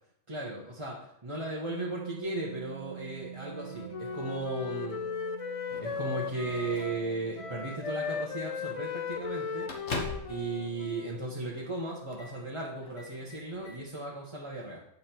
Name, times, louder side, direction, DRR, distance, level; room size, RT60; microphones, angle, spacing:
voice 1, 0.3-5.0 5.8-9.7 10.3-14.8, right 2 dB, 25° right, -5 dB, 1.3 m, -36 dB
sound 1, 1.7-13.8, right 11 dB, 65° right, 0.8 m, -47 dB
Wind instrument woodwind instrument, 3.5-7.1 7.4-11.3, left 6 dB, 50° left, 0.4 m, -37 dB
Microwave oven, 5.7-7.1 8.0-8.3 8.6-8.7 9.1-10.5 10.8-10.9 11.6-11.8 12.1-12.4 12.8-13.8, left 3 dB, 75° left, 1.6 m, -41 dB
8.7 x 5.6 x 4.4 m, 0.73 s
omnidirectional pair, 1.3 m